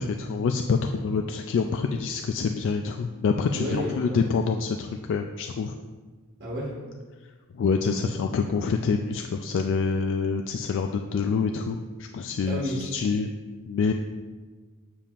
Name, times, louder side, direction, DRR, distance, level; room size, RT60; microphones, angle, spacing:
voice 1, 0.0-5.8 7.5-11.8 12.1-13.3 13.7-13.9, left 5 dB, 60° left, 5 dB, 0.3 m, -26 dB
voice 2, 3.5-4.4 6.4-6.7 12.4-12.9, equal, 45° right, -4 dB, 1.2 m, -31 dB
7.3 x 6.8 x 2.5 m, 1.4 s
head